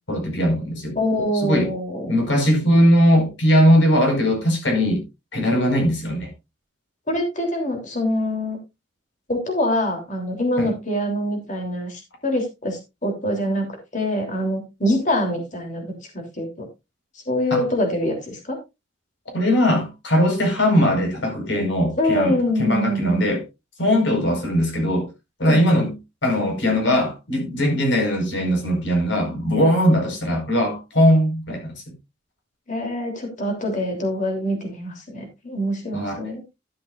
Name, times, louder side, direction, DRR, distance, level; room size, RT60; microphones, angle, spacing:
voice 1, 0.1-1.0 1.4-1.7 2.1-5.0 5.3-6.3 10.6-10.7 17.5-17.6 19.3-23.4 23.8-25.1 25.4-26.0 26.2-31.8 35.9-36.2, equal, 70° left, 5.0 m, -20 dB
voice 2, 0.9-2.2 7.1-8.6 9.3-16.6 17.3-18.6 22.0-23.2 25.4-25.6 32.7-36.4, left 1 dB, 40° left, 3.3 m, -25 dB
12.0 x 10.0 x 2.5 m
head